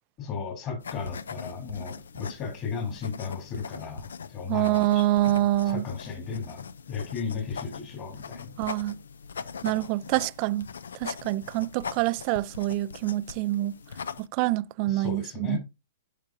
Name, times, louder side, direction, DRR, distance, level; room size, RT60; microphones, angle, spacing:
voice 1, 0.2-8.6 14.9-15.6, left 6 dB, 35° left, 3.8 m, -35 dB
sound 1, 0.8-14.3, left 6 dB, 75° left, 0.5 m, -41 dB
voice 2, 4.5-5.8 8.6-9.0 9.6-10.7 11.0-13.7 14.3-15.6, right 16 dB, 45° right, 0.4 m, -26 dB
11.5 x 5.3 x 2.6 m
hypercardioid pair, 115°, 0 cm